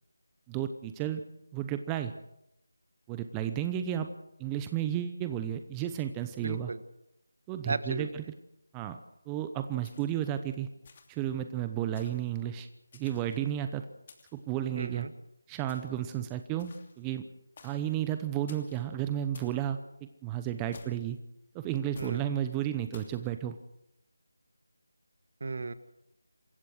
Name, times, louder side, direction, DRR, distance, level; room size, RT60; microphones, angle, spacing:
voice 1, 0.5-1.2 1.5-2.1 3.1-4.1 4.4-6.7 7.5-8.2 8.7-9.0 9.3-10.7 11.1-12.7 12.9-13.9 14.3-15.1 15.5-17.2 17.6-21.2 21.5-23.6, right 11 dB, 10° right, 9 dB, 0.8 m, -33 dB
voice 2, 6.4-6.8 7.6-8.1 14.7-15.1 22.0-22.3 25.4-25.7, right 3 dB, 55° right, 13 dB, 1.6 m, -34 dB
sound 1, 9.8-10.3 10.8-11.3 12.0-12.3 12.9-13.5 14.1-14.5 15.7-16.0 16.6-17.0 17.6-17.9 18.5-18.8 19.3-19.6 20.7-21.2 22.0-22.2 22.9-23.2, left 5 dB, 35° left, 2.9 m, -54 dB
27.5 x 15.5 x 6.4 m, 0.83 s
figure-of-eight pair, 165°, 0 cm